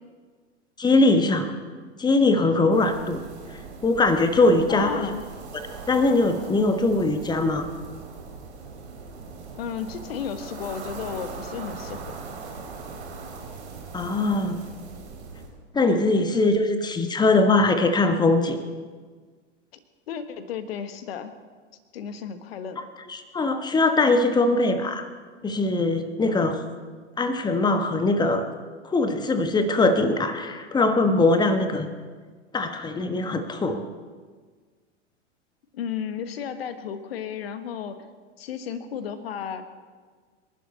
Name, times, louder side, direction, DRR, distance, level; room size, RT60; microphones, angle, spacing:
voice 1, 0.8-1.5 2.0-3.2 3.8-5.2 5.9-7.7 13.9-14.6 15.7-18.6 23.1-25.1 25.4-26.6 27.2-28.4 28.8-31.9 32.5-33.8, left 2 dB, 10° left, 8 dB, 1.3 m, -21 dB
sound 1, 2.7-15.5, right 4 dB, 65° right, 3.6 m, -40 dB
voice 2, 4.7-5.2 9.5-12.2 16.3-16.6 20.1-21.3 21.9-22.9 35.7-38.0 38.4-39.6, left 7 dB, 55° left, 10 dB, 1.5 m, -33 dB
27.5 x 11.5 x 4.2 m, 1.5 s
figure-of-eight pair, 95°, 36 cm